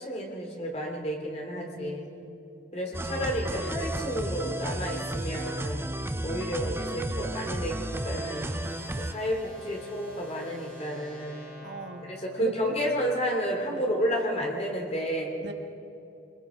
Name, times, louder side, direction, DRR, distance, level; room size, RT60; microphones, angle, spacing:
voice 1, 0.0-2.1 2.7-5.9 6.2-8.5 9.0-11.5 12.0-15.3, equal, 35° left, 1 dB, 2.9 m, -31 dB
voice 2, 1.5-2.3 3.5-3.7 7.2-7.4 11.6-12.0 12.4-12.7 13.7-13.9 15.4-15.5, right 3 dB, 65° right, 5 dB, 1.5 m, -40 dB
sound 1, 2.9-9.1, right 1 dB, 10° right, 0.5 m, -33 dB
sound 2, 6.1-13.3, left 1 dB, 5° left, 7.1 m, -49 dB
24.5 x 21.5 x 5.1 m, 2.7 s
head